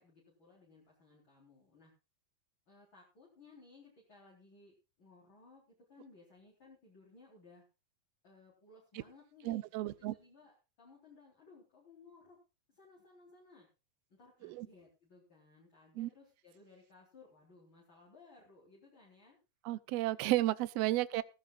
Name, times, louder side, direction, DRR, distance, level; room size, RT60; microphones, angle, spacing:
voice 1, 0.0-1.9 2.7-7.6 8.2-12.4 12.7-13.7 14.1-19.4 21.1-21.2, left 3 dB, 35° left, 4.6 m, -61 dB
voice 2, 9.4-10.1 14.4-14.7 16.0-16.1 19.6-21.2, right 16 dB, 80° right, 1.5 m, -33 dB
16.5 x 15.5 x 2.4 m
omnidirectional pair, 3.9 m